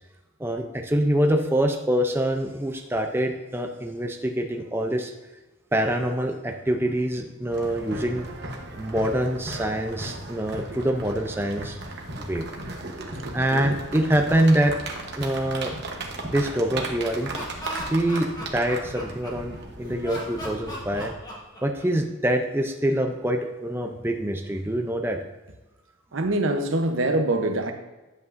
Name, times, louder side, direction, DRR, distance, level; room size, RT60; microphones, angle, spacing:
voice 1, 0.4-5.1 5.7-8.3 8.8-11.8 12.2-12.4 13.3-14.8 15.2-15.7 16.2-17.3 17.9-21.1 21.6-25.2, right 1 dB, 10° right, 4 dB, 0.5 m, -25 dB
sound 1, 7.5-21.1, right 2 dB, 55° right, 1.1 m, -36 dB
voice 2, 13.2-13.7 26.1-27.7, right 2 dB, 75° right, 6 dB, 0.8 m, -25 dB
Laughter, 17.1-19.6 20.0-22.1, equal, 20° left, 1.5 m, -37 dB
9.6 x 8.1 x 2.6 m, 1.1 s
head